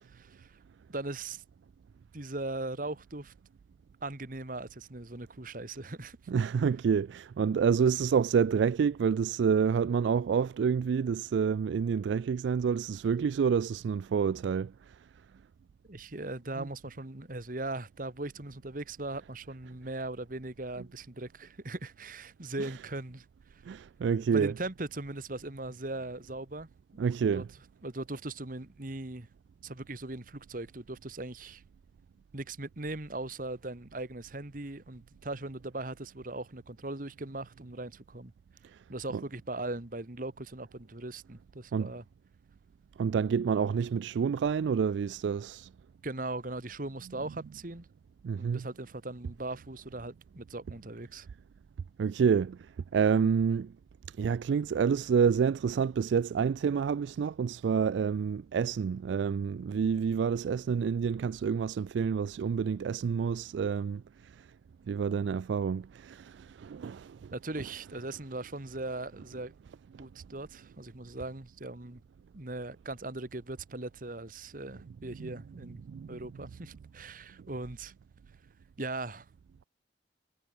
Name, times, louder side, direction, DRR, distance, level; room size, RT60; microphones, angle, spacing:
voice 1, 0.1-0.6 0.9-1.4 2.1-3.3 4.0-6.2 15.9-23.3 23.5-23.6 24.3-27.0 27.3-27.4 27.8-29.3 29.6-31.6 32.3-38.3 38.9-42.0 46.0-47.9 48.4-51.3 67.3-69.5 70.0-72.0 72.3-75.8 76.1-77.9 78.8-79.3, right 2 dB, 45° right, 1.6 m, -39 dB
voice 2, 6.3-14.7 16.6-16.7 22.6-22.7 23.7-24.5 27.0-27.5 41.7-41.9 43.0-45.7 48.2-48.6 52.0-52.6 52.9-53.7 54.2-64.0 64.9-67.3 75.2-75.3 75.9-76.2, right 6 dB, 75° right, 0.3 m, -28 dB
head